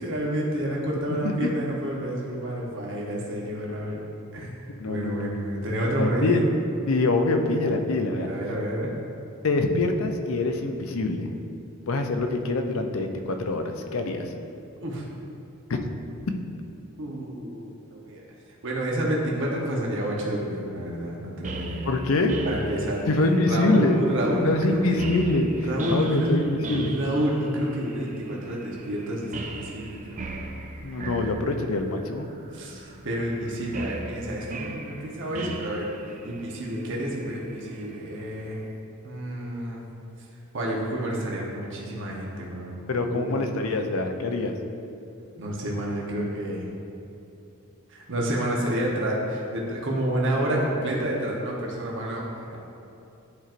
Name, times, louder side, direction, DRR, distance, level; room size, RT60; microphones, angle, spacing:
voice 1, 0.0-4.0 4.3-4.5 4.8-6.4 8.1-9.0 14.8-15.0 17.0-18.2 18.6-21.9 22.4-23.0 23.5-25.0 25.5-26.4 26.7-30.5 31.2-31.3 32.5-35.9 36.2-38.6 39.0-39.8 40.5-43.4 45.4-46.7 47.9-52.6, right 1 dB, 60° right, -3 dB, 1.0 m, -29 dB
voice 2, 1.1-1.5 4.8-5.4 6.0-6.4 6.9-8.3 9.4-11.3 11.9-14.3 15.7-15.8 21.8-22.3 23.1-24.0 24.4-27.0 30.8-32.3 42.9-44.5, left 2 dB, 65° left, 5 dB, 0.5 m, -25 dB
sound 1, 21.4-38.7, right 2 dB, 35° right, 0.5 m, -39 dB
11.0 x 4.4 x 2.5 m, 2.7 s
head